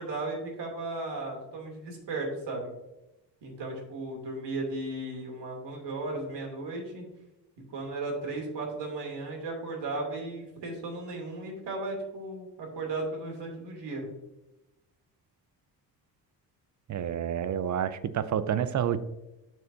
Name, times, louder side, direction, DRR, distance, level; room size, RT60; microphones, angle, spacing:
voice 1, 0.0-2.7 3.4-7.1 7.7-14.1, right 2 dB, 60° right, 0 dB, 2.7 m, -35 dB
voice 2, 16.9-19.0, right 9 dB, 40° right, 14 dB, 0.5 m, -29 dB
12.0 x 4.5 x 2.6 m, 0.98 s
hypercardioid pair, 50°, 48 cm